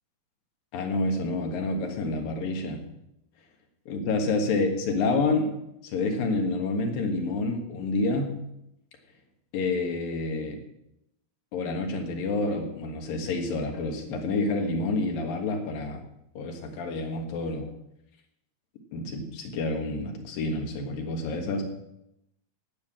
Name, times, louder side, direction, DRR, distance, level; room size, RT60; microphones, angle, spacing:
voice 1, 0.7-2.8 3.9-8.4 9.5-10.6 11.5-16.0 16.3-17.7 18.9-21.6, left 3 dB, 65° left, 3 dB, 3.3 m, -28 dB
17.0 x 5.8 x 7.4 m, 0.83 s
omnidirectional pair, 4.4 m